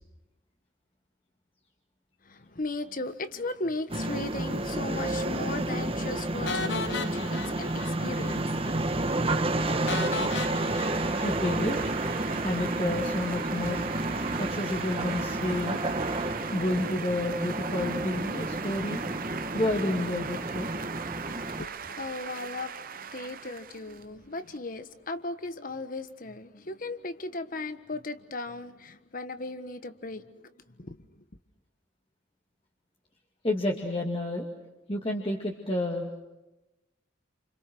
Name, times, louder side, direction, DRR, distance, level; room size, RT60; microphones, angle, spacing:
voice 1, 2.2-11.1 21.1-31.2, left 2 dB, 45° left, 1.4 m, -38 dB
sound 1, 3.9-21.6, right 2 dB, 30° right, 1.4 m, -31 dB
sound 2, 6.5-8.4 8.6-8.8 9.1-9.2 9.9-12.2, left 4 dB, 65° left, 1.1 m, -36 dB
sound 3, 7.9-24.6, right 7 dB, 50° right, 1.0 m, -40 dB
voice 2, 11.2-11.8 12.4-13.8 14.4-15.8 16.5-19.0 19.5-20.7 33.4-34.5 34.9-36.2, left 1 dB, 30° left, 2.3 m, -30 dB
29.5 x 28.0 x 6.2 m
head